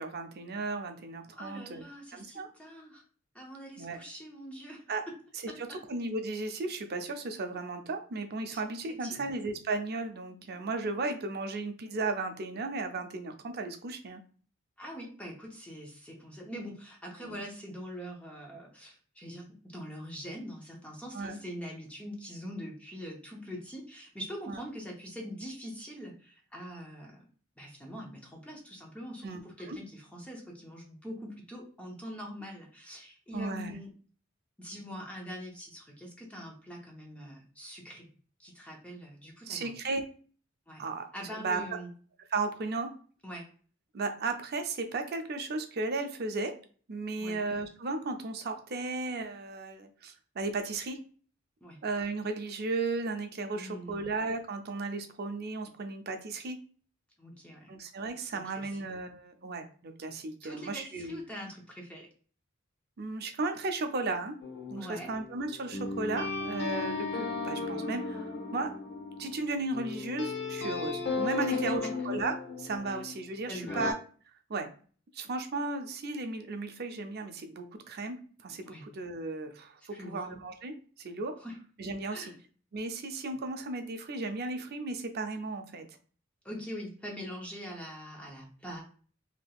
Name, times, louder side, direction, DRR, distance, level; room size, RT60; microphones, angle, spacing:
voice 1, 0.0-1.8 2.1-2.5 3.8-4.0 4.9-5.0 5.6-14.2 17.2-17.3 21.1-21.4 24.5-24.6 29.2-29.8 33.3-33.7 39.5-40.0 40.8-41.1 41.4-41.6 42.3-42.9 43.9-46.5 46.9-51.0 51.8-56.6 57.7-61.2 63.0-64.3 64.7-68.7 69.2-73.9 74.5-74.7 75.1-81.4 81.8-82.3 82.7-85.8, right 3 dB, 50° right, 6 dB, 0.5 m, -35 dB
voice 2, 1.3-3.0 3.3-5.1 5.5-5.8 8.5-8.6 8.9-9.3 14.8-27.2 27.6-33.9 34.6-38.1 38.4-39.8 40.7-40.8 41.1-41.9 43.2-43.5 47.2-47.4 51.6-51.8 53.5-54.1 57.2-57.7 58.3-58.7 60.4-62.1 64.8-65.1 71.5-71.9 72.9-73.0 73.5-73.8 78.6-78.9 79.9-80.2 81.4-81.6 82.1-82.4 86.4-88.8, equal, 5° left, -1 dB, 0.7 m, -43 dB
sound 1, 64.4-73.2 73.7-73.9, left 4 dB, 55° left, 0.8 m, -35 dB
3.4 x 2.8 x 2.3 m, 0.42 s
head